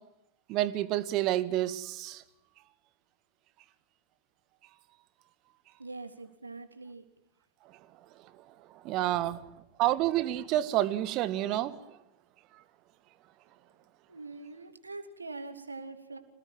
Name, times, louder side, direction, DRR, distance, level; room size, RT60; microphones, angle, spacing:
voice 1, 0.5-2.2 8.8-9.4 9.8-11.8, right 14 dB, 40° right, 14 dB, 2.0 m, -29 dB
voice 2, 5.8-7.0 9.1-9.3 14.1-16.2, right 3 dB, 80° right, 9 dB, 3.2 m, -43 dB
27.5 x 19.0 x 9.2 m, 0.87 s
figure-of-eight pair, 90°, 0 cm